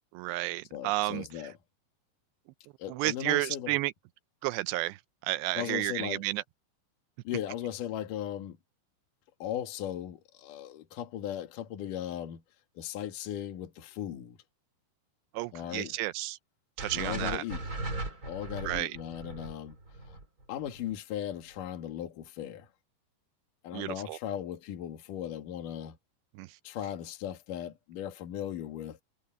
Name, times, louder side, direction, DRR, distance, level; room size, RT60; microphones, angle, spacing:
voice 1, 0.1-1.2 2.9-3.9 4.4-6.4 15.3-16.4 16.8-17.4 18.6-19.0 23.7-24.2 26.4-26.6, right 19 dB, 85° right, 2.7 m, -32 dB
voice 2, 0.7-1.6 2.8-3.7 5.5-6.2 7.2-8.6 9.4-12.4 12.7-14.4 15.5-16.0 16.9-17.7 18.2-19.8 20.0-20.2 20.5-22.7 23.6-26.0 26.6-29.0, left 11 dB, 55° left, 3.1 m, -37 dB
sound 1, 16.8-21.0, right 2 dB, 20° right, 3.6 m, -38 dB
omnidirectional pair, 5.0 m